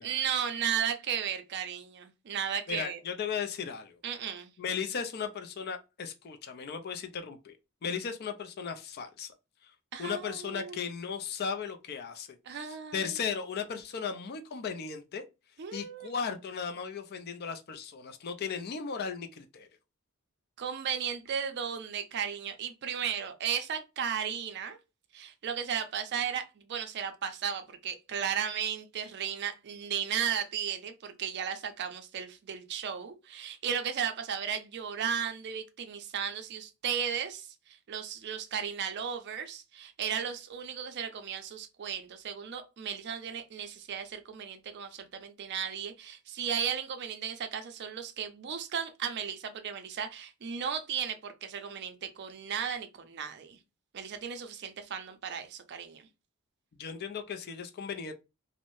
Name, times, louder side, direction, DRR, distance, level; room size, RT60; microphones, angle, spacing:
voice 1, 0.0-3.0 4.0-4.5 9.9-10.7 12.5-13.2 15.6-16.1 20.6-24.8 25.1-53.6 53.9-56.0, right 8 dB, 55° right, 0.4 m, -35 dB
voice 2, 2.7-4.0 4.6-7.6 7.8-9.3 9.6-9.7 10.0-15.2 15.7-19.7 56.7-58.1, left 6 dB, 50° left, 0.4 m, -36 dB
2.6 x 2.0 x 3.0 m
head